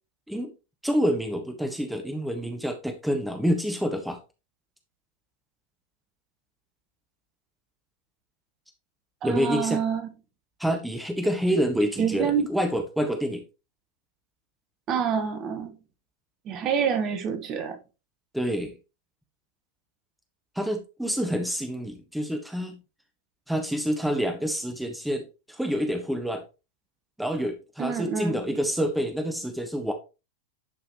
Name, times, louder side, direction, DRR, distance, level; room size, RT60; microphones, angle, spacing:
voice 1, 0.8-4.2 9.2-9.8 10.6-13.4 18.3-18.7 20.5-22.8 23.5-26.4 27.2-29.9, equal, ahead, 1.3 m, -27 dB
voice 2, 9.2-10.1 12.0-12.5 14.9-15.8 16.5-17.8 27.8-28.4, right 7 dB, 35° right, 1.7 m, -27 dB
11.0 x 5.7 x 3.0 m
figure-of-eight pair, 90°, 0 cm